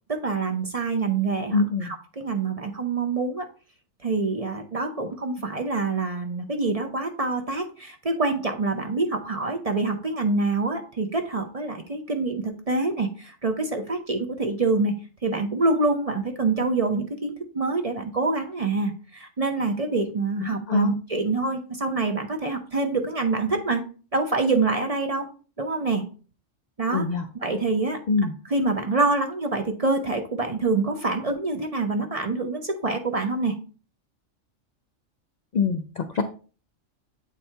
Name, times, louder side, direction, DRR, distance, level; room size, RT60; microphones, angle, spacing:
voice 1, 0.1-3.5 4.0-14.9 15.2-23.8 24.1-25.3 25.6-26.0 26.8-27.1 27.4-28.0 28.5-33.6, right 3 dB, 40° right, 5 dB, 0.6 m, -26 dB
voice 2, 1.5-1.9 20.4-21.0 26.9-27.3 28.1-28.3 35.5-36.2, left 4 dB, 80° left, 7 dB, 0.3 m, -24 dB
8.2 x 4.3 x 3.4 m, 0.38 s
omnidirectional pair, 1.4 m